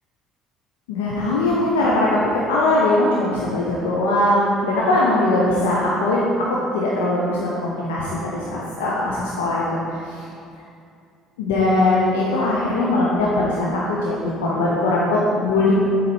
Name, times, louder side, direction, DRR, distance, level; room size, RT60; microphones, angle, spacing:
voice 1, 0.9-6.3 6.7-10.2 11.4-15.7, left 2 dB, 75° left, -5 dB, 0.7 m, -20 dB
7.6 x 4.0 x 4.5 m, 2.4 s
figure-of-eight pair, 55°, 0 cm